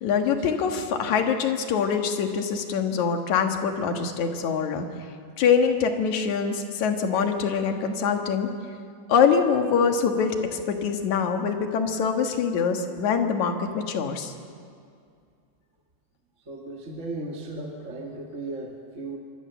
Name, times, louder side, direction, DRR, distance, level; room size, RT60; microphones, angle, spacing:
voice 1, 0.0-4.9 5.4-8.5 9.1-14.3, left 6 dB, 65° left, 5 dB, 2.9 m, -24 dB
voice 2, 16.5-19.2, right 2 dB, 30° right, 0 dB, 1.8 m, -36 dB
26.5 x 23.0 x 7.1 m, 2.3 s
omnidirectional pair, 3.7 m